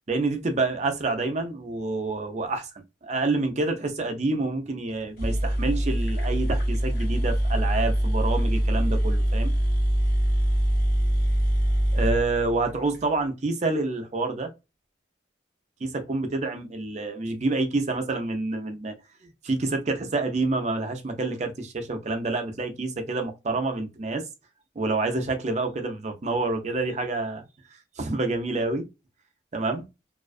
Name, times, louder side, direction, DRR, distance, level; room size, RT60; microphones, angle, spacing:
voice 1, 0.1-2.7 3.0-9.5 11.9-14.5 15.8-18.9 19.4-24.2 24.8-27.4 27.7-28.9 29.5-29.9, right 3 dB, 35° right, 0.4 m, -28 dB
sound 1, 4.9-5.0 5.2-13.0, right 1 dB, 50° left, 0.8 m, -24 dB
2.4 x 2.2 x 2.3 m
head